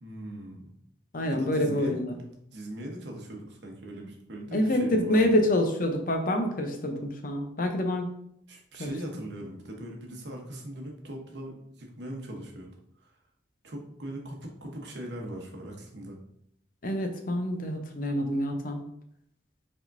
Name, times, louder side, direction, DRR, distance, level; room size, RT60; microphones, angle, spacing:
voice 1, 0.0-0.7 1.3-2.0 2.5-5.3 8.5-12.7 13.0-13.1 13.6-16.2, right 1 dB, 70° right, 1 dB, 1.0 m, -40 dB
voice 2, 1.1-2.2 4.5-4.8 5.1-8.0 8.8-8.9 16.8-18.8, left 1 dB, 50° left, 5 dB, 0.6 m, -27 dB
4.8 x 3.6 x 2.6 m, 0.72 s
head